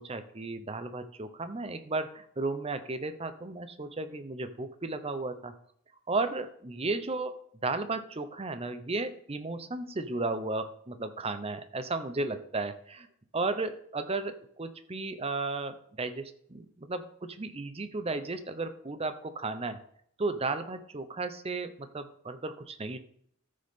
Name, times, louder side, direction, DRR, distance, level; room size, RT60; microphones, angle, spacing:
voice 1, 0.0-5.5 6.1-7.3 7.6-13.1 13.3-19.8 20.2-23.0, right 3 dB, 30° right, 10 dB, 0.7 m, -34 dB
14.0 x 6.5 x 3.7 m, 0.67 s
head